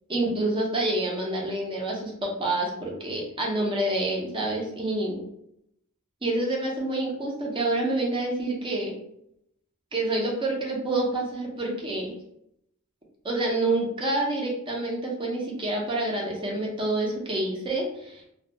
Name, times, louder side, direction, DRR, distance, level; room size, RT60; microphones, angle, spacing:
voice 1, 0.1-5.2 6.2-8.9 9.9-12.1 13.2-18.2, right 2 dB, 25° right, -2 dB, 0.6 m, -27 dB
2.3 x 2.1 x 2.7 m, 0.76 s
head